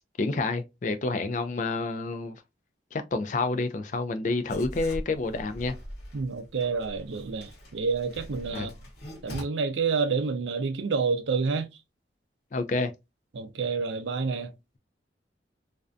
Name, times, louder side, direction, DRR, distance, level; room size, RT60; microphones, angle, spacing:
voice 1, 0.2-2.4 2.9-5.8 8.5-8.7 12.5-12.9, left 3 dB, 40° left, 0.3 m, -29 dB
Writing, 4.5-9.4, equal, 60° left, 1.0 m, -42 dB
voice 2, 6.1-8.8 9.2-11.7 13.3-14.5, right 5 dB, 80° right, 0.4 m, -28 dB
2.5 x 2.1 x 2.4 m
head